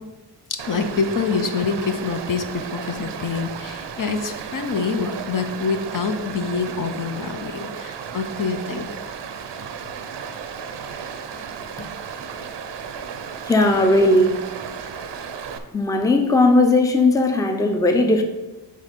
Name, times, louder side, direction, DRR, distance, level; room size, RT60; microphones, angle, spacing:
voice 1, 0.5-8.9, left 5 dB, 50° left, 7 dB, 0.6 m, -26 dB
Stream, 0.6-15.6, right 6 dB, 85° right, 0.7 m, -34 dB
voice 2, 13.5-14.4 15.7-18.2, left 2 dB, 10° left, 5 dB, 0.5 m, -17 dB
6.6 x 4.1 x 5.2 m, 1.1 s
wide cardioid pair, 125°, 41 cm